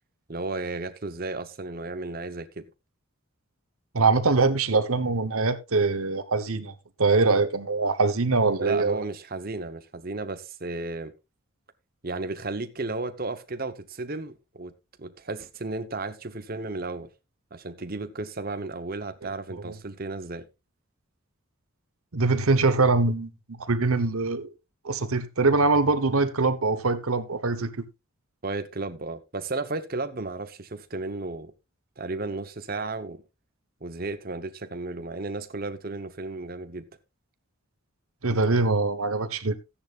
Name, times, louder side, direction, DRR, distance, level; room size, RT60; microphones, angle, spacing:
voice 1, 0.3-2.7 8.6-11.1 12.0-14.7 15.0-17.1 17.5-20.5 28.4-31.5 32.0-33.2 33.8-36.9, right 3 dB, 40° right, 0.9 m, -34 dB
voice 2, 3.9-6.7 7.0-9.0 19.6-19.7 22.1-24.5 24.8-27.7 38.2-39.6, right 3 dB, 80° right, 1.1 m, -23 dB
14.0 x 10.0 x 2.5 m
head